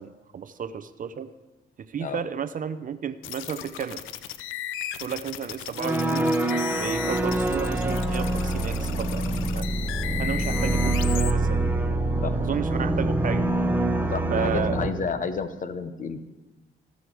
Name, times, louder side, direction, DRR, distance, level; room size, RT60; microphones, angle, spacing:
voice 1, 0.0-1.3 1.8-4.0 5.0-6.4 6.8-9.3 9.6-9.7 10.2-11.8 12.5-13.5 14.3-14.8, right 7 dB, 45° right, 12 dB, 0.6 m, -32 dB
sound 1, 3.2-11.3, left 12 dB, 90° left, 0.5 m, -36 dB
sound 2, 5.8-14.9, right 2 dB, 10° right, 0.7 m, -25 dB
voice 2, 14.1-16.2, left 5 dB, 40° left, 11 dB, 0.8 m, -31 dB
15.5 x 6.3 x 4.8 m, 1.1 s
cardioid pair, 90°, 20 cm